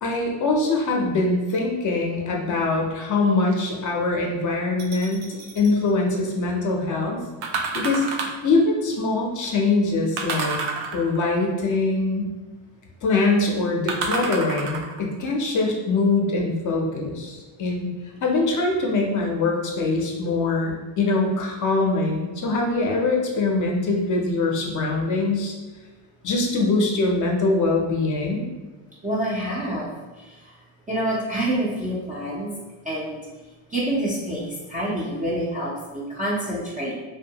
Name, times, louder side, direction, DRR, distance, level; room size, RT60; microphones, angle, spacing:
voice 1, 0.0-7.2 7.7-8.1 8.4-10.6 10.9-12.3 13.0-17.9 18.2-25.5 26.2-28.5, left 3 dB, 40° left, 0 dB, 0.5 m, -23 dB
sound 1, 4.8-5.7 7.4-8.5 10.2-11.3 13.9-15.0 15.7-15.8, right 4 dB, 70° right, 0.6 m, -29 dB
voice 2, 29.0-29.9 30.2-30.5 30.9-32.5 32.8-33.2 33.7-36.9, right 1 dB, 20° right, -7 dB, 0.3 m, -27 dB
2.5 x 2.2 x 2.8 m, 1.2 s
cardioid pair, 120°, 50 cm